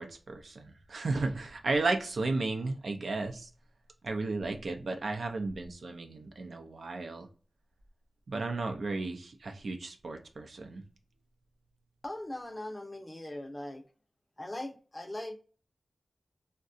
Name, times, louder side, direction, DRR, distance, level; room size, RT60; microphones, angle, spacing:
voice 1, 0.0-3.5 4.0-7.3 8.3-10.8, right 3 dB, 75° right, 0.5 m, -34 dB
voice 2, 12.0-13.8 14.4-15.4, left 1 dB, 20° left, 0.5 m, -40 dB
3.6 x 2.2 x 2.5 m
wide cardioid pair, 65°, 0 cm